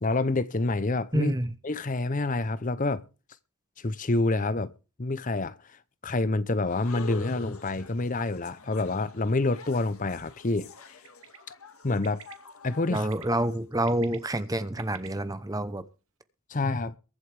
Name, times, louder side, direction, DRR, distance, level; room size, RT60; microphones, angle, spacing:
voice 1, 0.0-1.3 1.6-3.0 3.8-4.7 5.0-10.7 11.8-12.2 12.6-13.1 16.5-16.9, left 2 dB, 35° left, 0.7 m, -27 dB
voice 2, 1.1-1.5 12.9-15.8, right 1 dB, 15° right, 0.8 m, -28 dB
sound 1, 6.7-13.6, left 3 dB, 75° left, 1.7 m, -46 dB
Bird, 11.0-11.4 12.0-12.3 12.9-13.2 13.7-15.1, right 9 dB, 65° right, 1.8 m, -46 dB
23.0 x 8.0 x 3.4 m
head